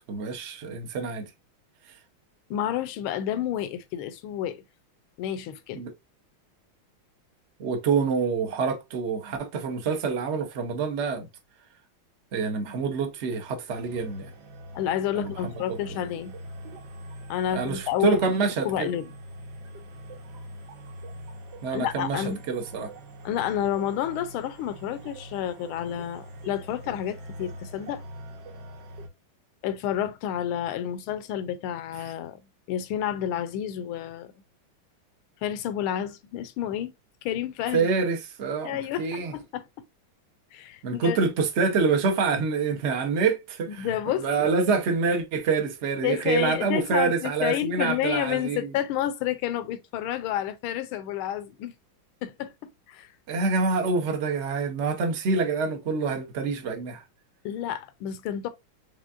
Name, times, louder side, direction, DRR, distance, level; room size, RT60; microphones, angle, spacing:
voice 1, 0.1-1.3 1.9-2.0 5.7-5.9 7.6-11.3 12.3-14.3 15.2-15.8 17.5-18.9 21.6-22.9 37.7-39.3 40.8-48.8 53.3-57.0, right 4 dB, 80° right, 0.6 m, -26 dB
voice 2, 2.5-4.6 5.2-5.8 14.7-16.3 17.3-18.2 18.6-19.1 21.7-22.4 23.2-28.0 29.6-32.4 32.7-34.3 35.4-36.9 37.2-37.9 38.6-39.6 40.5-41.2 43.8-44.5 46.0-51.7 52.2-53.1 57.4-58.5, left 11 dB, 90° left, 1.5 m, -30 dB
sound 1, 13.7-29.1, equal, 60° right, 1.4 m, -43 dB
5.0 x 3.3 x 2.4 m
omnidirectional pair, 2.3 m